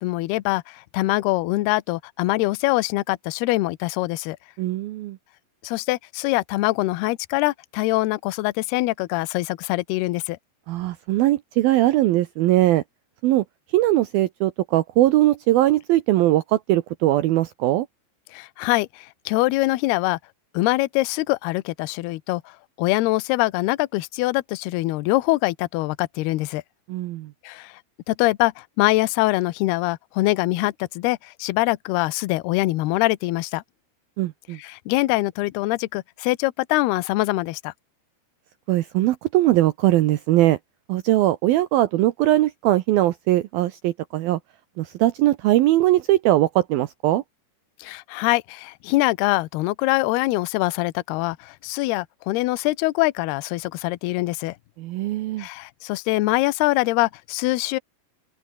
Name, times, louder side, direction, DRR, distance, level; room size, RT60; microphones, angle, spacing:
voice 1, 0.0-4.4 5.6-10.4 18.3-20.2 20.5-26.6 27.4-27.8 28.1-33.6 34.6-37.7 47.8-54.6 55.4-57.8, left 19 dB, 75° left, 2.6 m, -23 dB
voice 2, 4.6-5.2 10.7-12.8 13.2-13.4 13.7-17.9 26.9-27.3 34.2-34.6 38.7-40.6 40.9-44.4 44.8-47.2 54.8-55.5, right 15 dB, 80° right, 2.2 m, -20 dB
open air
omnidirectional pair, 5.2 m